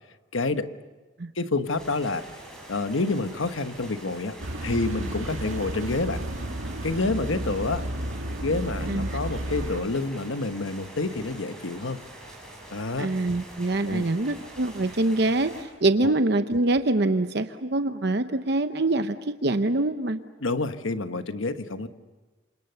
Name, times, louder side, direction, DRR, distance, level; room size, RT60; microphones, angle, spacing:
voice 1, 0.3-0.7 1.3-2.2 2.7-6.2 6.8-7.8 8.4-12.0 12.7-13.1 13.9-14.0 16.0-16.1 20.4-21.9, left 3 dB, 80° left, 9 dB, 1.2 m, -28 dB
sound 1, 1.7-15.6, right 1 dB, 5° left, 6.3 m, -45 dB
sound 2, 4.4-9.8, right 1 dB, 85° right, 2.1 m, -32 dB
voice 2, 8.8-9.2 13.0-20.2, right 2 dB, 55° right, 9 dB, 0.8 m, -25 dB
28.0 x 27.0 x 6.9 m, 1.2 s
head